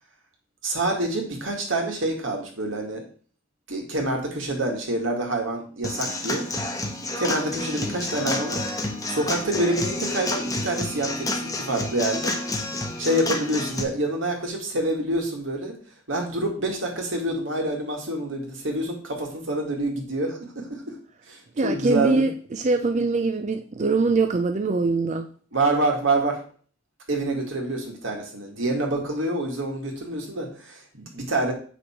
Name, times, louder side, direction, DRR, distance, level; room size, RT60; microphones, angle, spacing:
voice 1, 0.6-3.0 3.7-6.5 7.2-8.6 9.1-12.4 13.0-15.8 16.1-21.0 21.3-22.3 25.5-26.4 27.1-31.5, right 2 dB, 80° right, 1 dB, 2.4 m, -27 dB
Human voice / Acoustic guitar / Drum, 5.8-13.8, left 2 dB, 20° left, 1.3 m, -29 dB
voice 2, 21.6-25.3, right 3 dB, 40° right, 7 dB, 0.5 m, -23 dB
8.2 x 6.1 x 4.6 m, 0.44 s
head